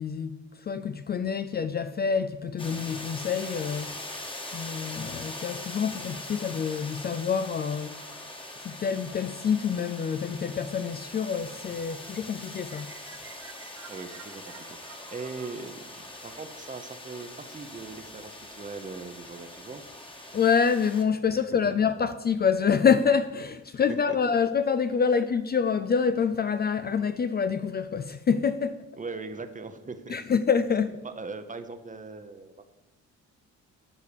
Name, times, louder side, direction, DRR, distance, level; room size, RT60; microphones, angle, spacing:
voice 1, 0.0-4.0 4.5-8.0 8.6-12.9 20.3-28.9 30.1-31.0, left 6 dB, 35° left, 0.4 m, -26 dB
sound 1, 2.6-21.0, left 1 dB, 15° left, 1.4 m, -42 dB
sound 2, 12.7-16.8, right 7 dB, 50° right, 0.9 m, -50 dB
voice 2, 13.9-15.9 16.2-19.8 21.3-21.7 24.1-24.2 29.0-30.2 31.0-32.7, right 4 dB, 25° right, 0.9 m, -40 dB
9.8 x 4.8 x 6.8 m
cardioid pair, 90°, 30 cm